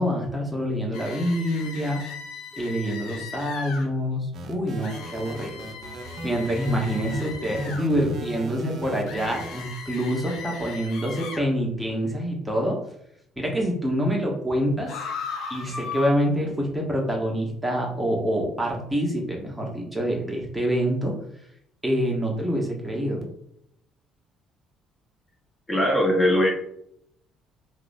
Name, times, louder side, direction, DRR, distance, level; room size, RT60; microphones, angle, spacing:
voice 1, 0.0-2.0 2.5-5.6 6.2-12.8 13.4-14.9 15.5-21.1 21.8-23.2, equal, 10° right, -1 dB, 0.7 m, -26 dB
sound 1, 0.9-3.9 4.8-7.8 9.1-11.5 14.9-16.1, left 5 dB, 65° left, 0.4 m, -37 dB
sound 2, 4.3-9.6, right 3 dB, 55° right, 0.4 m, -37 dB
voice 2, 25.7-26.5, left 1 dB, 25° left, 0 dB, 0.7 m, -20 dB
2.8 x 2.0 x 2.5 m, 0.73 s
hypercardioid pair, 50°, 0 cm